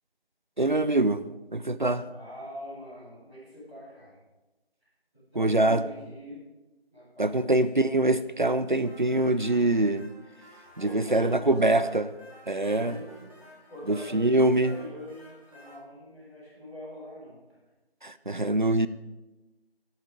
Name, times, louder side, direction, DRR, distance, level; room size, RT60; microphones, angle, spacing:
voice 1, 0.6-1.2 1.5-2.1 5.4-5.8 7.2-10.1 10.8-12.0 12.5-13.0 13.9-14.8 18.0-18.9, right 2 dB, 50° right, 14 dB, 0.5 m, -24 dB
voice 2, 2.0-4.2 5.1-6.4 6.9-7.6 10.8-12.0 12.5-17.4, left 1 dB, 5° right, -20 dB, 3.5 m, -43 dB
sound 1, 8.9-15.8, equal, 35° right, 3.8 m, -54 dB
13.5 x 10.5 x 3.7 m, 1.1 s
figure-of-eight pair, 175°, 31 cm